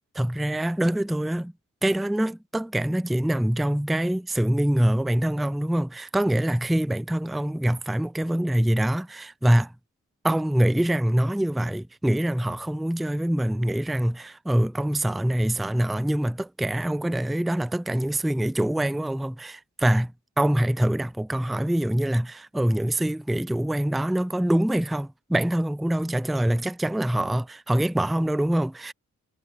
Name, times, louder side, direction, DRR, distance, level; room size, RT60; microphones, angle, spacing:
voice 1, 0.2-1.5 1.8-9.7 10.2-20.1 20.4-28.9, right 1 dB, ahead, 0.5 m, -24 dB
supercardioid pair, 45°, 34 cm